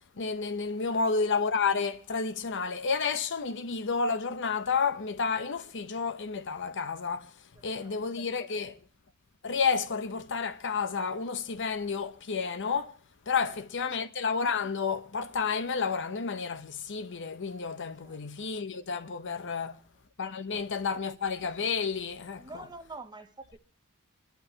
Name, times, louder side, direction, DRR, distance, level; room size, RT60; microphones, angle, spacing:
voice 1, 0.0-7.3 7.6-8.8 9.4-12.9 13.3-19.8 20.2-22.6, left 5 dB, 55° left, 0.8 m, -31 dB
voice 2, 7.5-8.0 13.4-14.0 18.0-18.5 19.6-19.8 20.5-20.7 22.4-23.6, right 2 dB, 20° right, 0.8 m, -48 dB
25.5 x 11.5 x 2.9 m
head